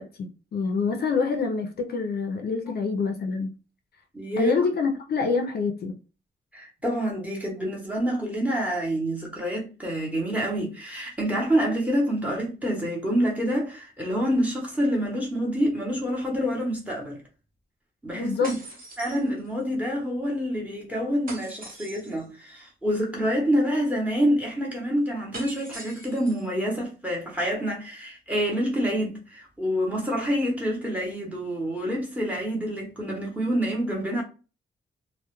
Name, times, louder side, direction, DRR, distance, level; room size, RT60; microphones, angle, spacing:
voice 1, 0.0-3.5 4.4-5.9 18.1-18.5, left 4 dB, 55° left, 0.4 m, -26 dB
voice 2, 4.1-4.5 6.5-17.2 18.0-18.5 19.0-34.2, equal, 5° right, 0.7 m, -27 dB
sound 1, 18.4-19.7 21.3-22.3 25.3-26.5, right 2 dB, 45° right, 0.7 m, -42 dB
2.2 x 2.0 x 2.9 m
wide cardioid pair, 170°, 20 cm